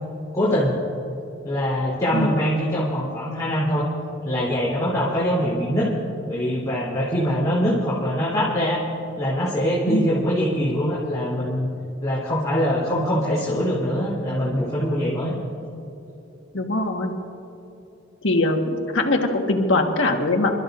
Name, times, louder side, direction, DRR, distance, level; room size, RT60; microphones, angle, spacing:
voice 1, 0.3-0.8 1.4-3.9 4.2-5.9 6.2-8.8 9.1-11.7 12.0-15.3, equal, 20° left, -9 dB, 3.4 m, -23 dB
voice 2, 16.5-17.1 18.2-20.5, left 2 dB, 85° left, 3 dB, 1.6 m, -22 dB
28.0 x 13.5 x 2.6 m, 2.9 s
head